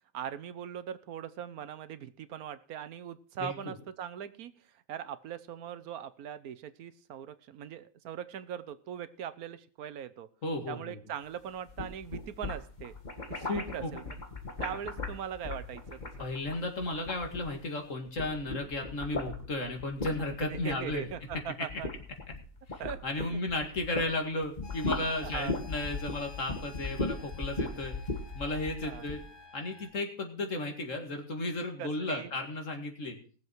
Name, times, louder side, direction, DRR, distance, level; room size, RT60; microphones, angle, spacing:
voice 1, 0.1-4.5 4.9-10.3 10.7-12.9 13.3-14.2 14.6-16.3 20.4-21.9 22.8-23.4 25.2-25.5 28.8-29.0 31.8-32.3, right 9 dB, 80° right, 14 dB, 1.3 m, -40 dB
voice 2, 3.4-3.7 10.4-11.0 13.5-13.9 16.2-21.1 22.7-27.9 28.3-29.2 29.5-33.2, left 2 dB, 55° left, 4 dB, 2.4 m, -34 dB
sound 1, 11.6-17.8 18.1-24.1 24.4-29.2, left 3 dB, 30° left, 1.6 m, -38 dB
sound 2, 24.6-29.9, left 4 dB, 75° left, 3.2 m, -52 dB
19.0 x 7.3 x 4.6 m, 0.42 s
omnidirectional pair, 1.6 m